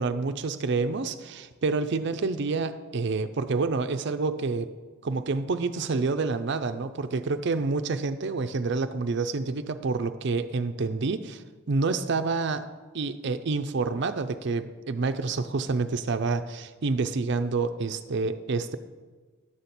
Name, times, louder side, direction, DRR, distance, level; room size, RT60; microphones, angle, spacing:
voice 1, 0.0-4.7 5.0-12.7 12.9-18.8, right 4 dB, 60° right, 10 dB, 0.5 m, -28 dB
11.0 x 4.3 x 8.0 m, 1.4 s
head